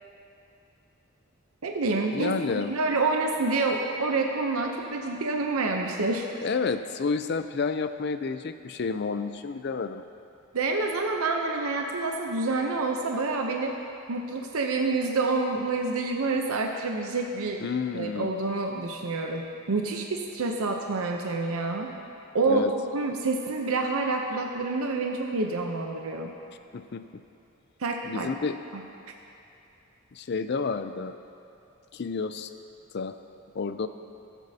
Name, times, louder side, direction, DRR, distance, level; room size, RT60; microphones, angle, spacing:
voice 1, 1.6-6.3 10.5-13.8 14.1-17.6 17.9-21.9 22.3-22.6 22.9-26.3 27.8-28.3, right 3 dB, 80° right, 2 dB, 0.7 m, -28 dB
voice 2, 2.1-2.7 6.4-10.0 17.6-18.3 22.5-22.7 26.7-27.0 28.0-28.6 30.1-31.2 31.9-32.5 32.9-33.2 33.5-33.9, left 4 dB, 50° left, 10 dB, 0.4 m, -30 dB
18.0 x 8.2 x 2.8 m, 2.8 s
head